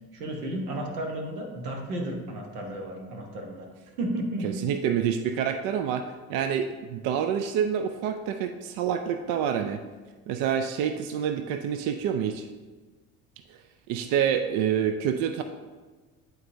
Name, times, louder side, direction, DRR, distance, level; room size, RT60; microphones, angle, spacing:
voice 1, 0.1-3.7 4.0-4.6 5.5-5.6, right 1 dB, 80° right, 2 dB, 1.1 m, -33 dB
voice 2, 4.4-9.8 10.3-12.5 13.5-13.6 13.9-15.4, right 8 dB, 50° right, 8 dB, 0.5 m, -27 dB
11.0 x 3.9 x 2.6 m, 1.3 s
figure-of-eight pair, 50°, 44 cm